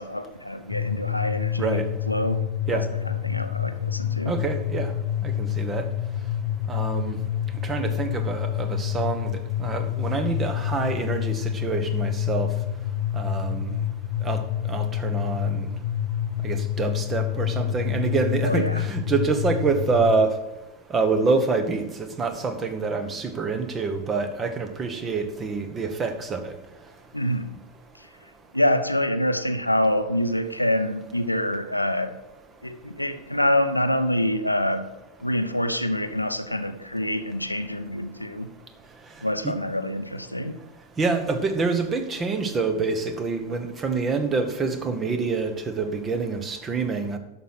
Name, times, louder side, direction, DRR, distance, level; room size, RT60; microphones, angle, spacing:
voice 1, 0.0-2.4 2.7-4.3 18.4-18.8 27.1-27.5 28.5-32.2 32.6-34.9 35.2-38.5 39.2-40.6, left 1 dB, 85° left, 8 dB, 0.7 m, -26 dB
sound 1, 0.7-20.3, left 11 dB, 50° left, 0.4 m, -28 dB
voice 2, 4.2-4.9 5.2-5.8 6.7-7.2 7.6-9.3 9.6-12.5 13.1-13.7 14.2-14.4 14.7-15.7 16.4-20.3 20.9-26.5 39.4-39.5 41.0-47.2, right 4 dB, 20° right, 8 dB, 1.2 m, -26 dB
11.0 x 6.6 x 5.9 m, 1.1 s
figure-of-eight pair, 90°, 0 cm